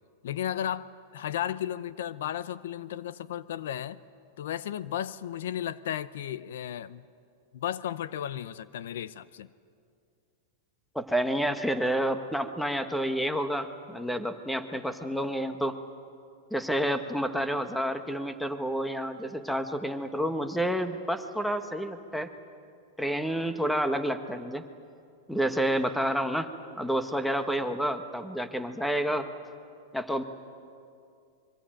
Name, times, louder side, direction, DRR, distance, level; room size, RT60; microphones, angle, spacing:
voice 1, 0.2-4.0 4.4-7.1 7.5-9.5, left 10 dB, 75° left, 17 dB, 0.7 m, -34 dB
voice 2, 10.9-15.8 16.5-22.3 23.0-24.6 25.3-26.5 26.8-29.3 29.9-30.2, equal, ahead, 9 dB, 1.2 m, -29 dB
25.0 x 23.0 x 9.0 m, 2.4 s
supercardioid pair, 150°, 0 cm